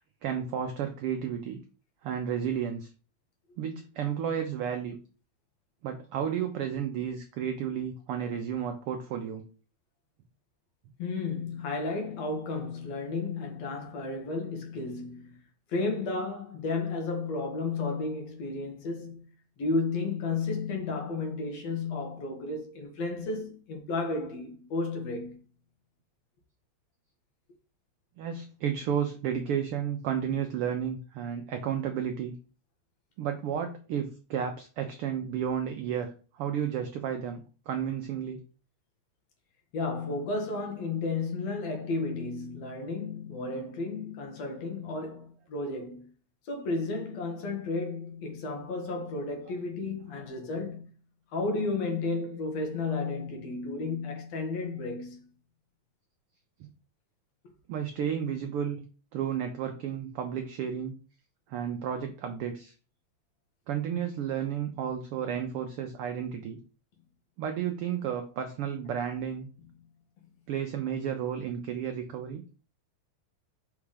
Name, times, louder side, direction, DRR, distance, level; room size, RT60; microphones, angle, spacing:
voice 1, 0.2-1.6 2.0-2.9 3.6-5.0 5.8-9.4 28.2-32.3 33.2-38.4 56.6-56.7 57.7-58.8 59.1-60.9 61.5-62.7 63.7-66.6 67.4-69.5 70.5-72.4, right 8 dB, 90° right, 1.2 m, -32 dB
voice 2, 11.0-15.4 15.7-19.3 19.6-25.4 39.7-46.1 46.5-50.9 51.3-55.3, left 3 dB, 65° left, 2.3 m, -33 dB
5.6 x 3.6 x 4.9 m
omnidirectional pair, 3.3 m